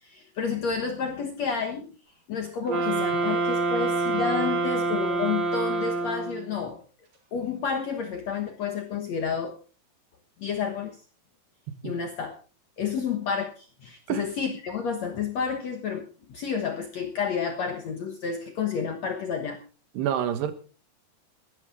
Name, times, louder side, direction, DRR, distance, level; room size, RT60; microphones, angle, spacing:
voice 1, 0.0-1.9 2.3-6.8 7.3-9.6 10.4-11.0 11.8-12.3 12.8-19.6, left 6 dB, 60° left, 1.9 m, -30 dB
sound 1, 2.7-6.6, right 3 dB, 40° right, 4.9 m, -26 dB
voice 2, 20.0-20.5, right 9 dB, 80° right, 3.5 m, -27 dB
21.0 x 13.0 x 3.7 m
omnidirectional pair, 4.8 m